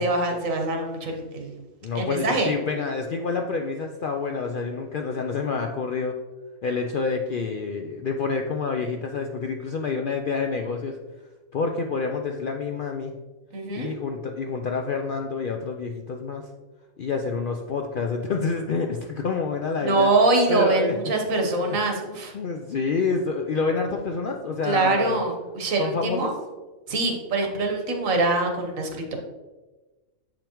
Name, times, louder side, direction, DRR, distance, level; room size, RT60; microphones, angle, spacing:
voice 1, 0.0-1.5 1.9-2.5 13.5-13.9 19.8-22.3 24.6-26.3 26.9-29.2, right 3 dB, 80° right, 3 dB, 1.4 m, -24 dB
voice 2, 1.8-6.1 6.6-11.0 11.5-13.1 13.8-16.5 17.0-20.1 20.5-21.1 22.3-25.2 25.8-26.3, left 4 dB, 65° left, 3 dB, 0.5 m, -28 dB
7.5 x 5.1 x 3.0 m, 1.2 s
omnidirectional pair, 1.4 m